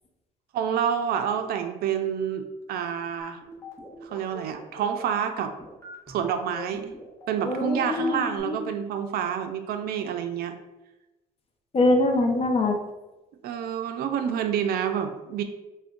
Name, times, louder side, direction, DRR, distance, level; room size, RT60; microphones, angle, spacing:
voice 1, 0.5-3.4 4.0-5.5 6.1-6.9 7.3-10.6 13.4-15.4, right 8 dB, 65° right, 7 dB, 0.4 m, -28 dB
sound 1, 3.2-8.4, left 2 dB, 15° left, 1.0 m, -44 dB
voice 2, 7.5-8.6 11.7-12.8, left 2 dB, 35° left, 3 dB, 0.6 m, -23 dB
3.4 x 2.2 x 3.7 m, 1.0 s
cardioid pair, 110°, 17 cm